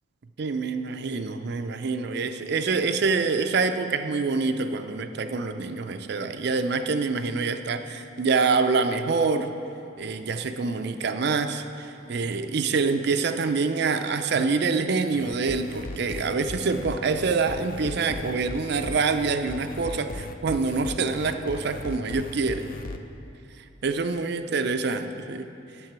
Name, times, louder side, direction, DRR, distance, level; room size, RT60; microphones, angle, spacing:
voice 1, 0.4-9.5 10.0-22.7 23.8-25.5, right 4 dB, 55° right, 8 dB, 0.5 m, -26 dB
sound 1, 15.1-23.0, left 2 dB, 45° left, 0.5 m, -37 dB
11.0 x 7.5 x 5.9 m, 2.7 s
head